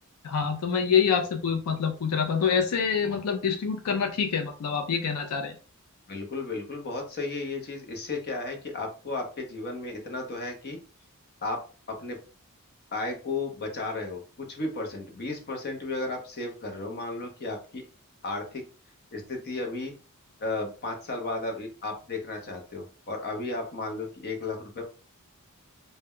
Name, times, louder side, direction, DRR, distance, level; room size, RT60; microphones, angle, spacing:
voice 1, 0.2-5.5, left 6 dB, 85° left, 6 dB, 0.4 m, -26 dB
voice 2, 6.1-10.8 11.4-11.6 11.9-12.2 12.9-17.8 18.2-18.6 19.1-19.9 20.4-24.8, left 2 dB, 45° left, 3 dB, 0.7 m, -34 dB
2.1 x 2.1 x 3.5 m, 0.37 s
head